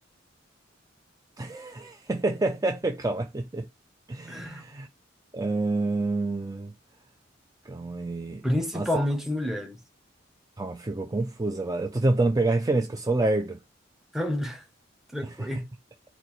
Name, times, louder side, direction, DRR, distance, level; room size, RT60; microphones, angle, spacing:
voice 1, 1.4-3.7 4.1-4.9 5.3-6.7 7.7-8.4 8.7-8.9 10.6-13.6 15.2-15.5, right 2 dB, 20° right, 0.5 m, -27 dB
voice 2, 4.3-4.7 8.4-9.8 14.1-14.6 15.1-15.7, left 1 dB, ahead, 1.0 m, -29 dB
4.4 x 2.6 x 4.1 m
head